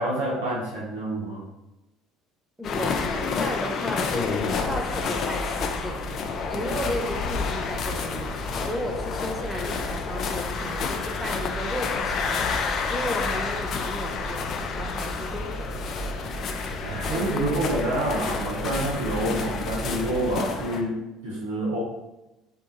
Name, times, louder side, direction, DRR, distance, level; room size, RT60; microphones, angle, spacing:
voice 1, 0.0-1.5 16.8-21.8, right 1 dB, 80° right, -6 dB, 0.7 m, -28 dB
sound 1, 2.6-20.8, left 5 dB, 50° left, 0.4 m, -30 dB
voice 2, 2.6-6.0 6.5-8.3 8.6-15.9 17.1-17.7, equal, 5° right, 1 dB, 0.7 m, -34 dB
sound 2, 4.0-20.4, right 1 dB, 25° right, 1.3 m, -37 dB
3.5 x 2.7 x 2.6 m, 0.97 s
hypercardioid pair, 65°, 0 cm